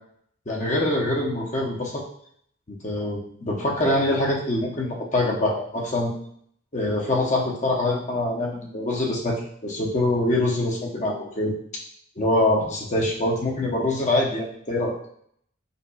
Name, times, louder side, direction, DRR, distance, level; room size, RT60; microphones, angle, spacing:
voice 1, 0.5-2.0 2.7-6.1 6.7-11.6 12.2-15.0, left 1 dB, 35° left, -2 dB, 0.8 m, -24 dB
5.3 x 2.3 x 2.3 m, 0.65 s
head